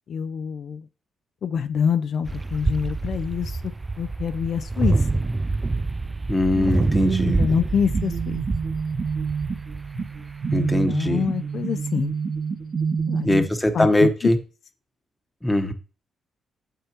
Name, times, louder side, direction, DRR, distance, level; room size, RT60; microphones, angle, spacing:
voice 1, 0.1-0.8 1.4-3.6 4.0-5.1 7.2-8.4 10.5-12.1 13.1-13.5 13.7-14.1, left 7 dB, 60° left, 0.4 m, -26 dB
sound 1, 2.2-10.4, right 3 dB, 20° right, 0.3 m, -27 dB
voice 2, 6.3-7.4 10.5-11.2 13.2-14.4 15.4-15.7, left 1 dB, 10° left, 1.1 m, -21 dB
sound 2, 6.5-13.4, right 6 dB, 55° right, 1.5 m, -27 dB
8.9 x 6.8 x 3.0 m
cardioid pair, 80°, 0 cm